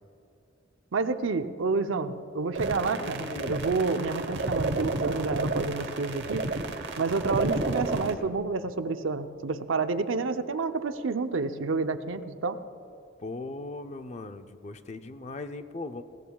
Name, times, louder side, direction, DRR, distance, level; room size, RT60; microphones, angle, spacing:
voice 1, 0.9-6.5 7.0-12.6, right 4 dB, 90° right, 9 dB, 0.6 m, -29 dB
sound 1, 2.5-8.1, right 2 dB, 60° right, 1.0 m, -31 dB
voice 2, 2.9-3.6 13.2-16.0, left 2 dB, 35° left, 9 dB, 0.5 m, -38 dB
21.0 x 17.0 x 2.3 m, 2.6 s
head